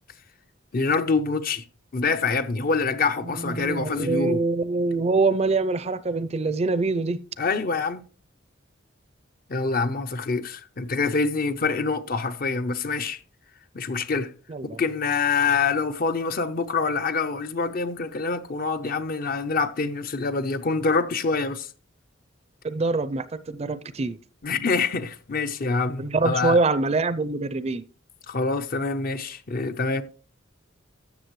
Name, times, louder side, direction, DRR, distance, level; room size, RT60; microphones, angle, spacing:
voice 1, 0.7-1.6 1.9-4.4 7.4-8.1 9.5-13.2 13.7-14.3 14.8-21.7 24.4-26.6 28.3-30.0, left 4 dB, 50° left, 0.6 m, -25 dB
voice 2, 3.3-7.2 14.5-14.8 22.6-24.2 26.0-27.8, right 3 dB, 35° right, 0.4 m, -24 dB
13.0 x 7.3 x 3.1 m
head